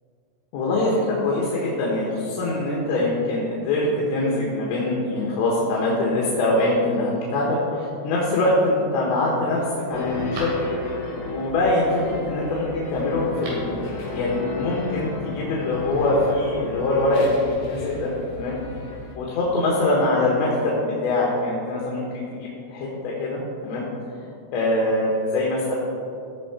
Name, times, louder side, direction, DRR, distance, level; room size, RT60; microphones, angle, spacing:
voice 1, 0.5-9.6 9.9-10.5 11.1-17.4 17.7-18.6 19.2-23.9 24.5-25.7, left 2 dB, 90° left, -4 dB, 3.7 m, -23 dB
Telephone, 8.0-8.6 9.2-9.3 9.6-11.2 13.2-13.8 14.1-14.2, right 2 dB, 80° right, 4.4 m, -40 dB
sound 1, 9.9-19.2, left 3 dB, 70° left, 1.7 m, -33 dB
16.5 x 5.7 x 4.3 m, 2.6 s
omnidirectional pair, 5.0 m